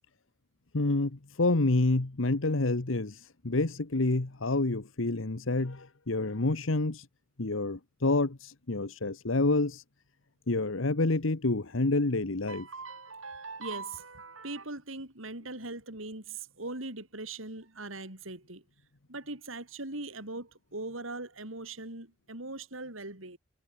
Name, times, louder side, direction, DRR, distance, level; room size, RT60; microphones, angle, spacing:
voice 1, 0.7-3.1 3.4-7.0 7.4-8.4 8.7-9.8 10.5-12.7, left 2 dB, 75° left, 1.3 m, -28 dB
voice 2, 12.5-18.6 19.1-23.4, right 2 dB, 85° right, 7.3 m, -40 dB
head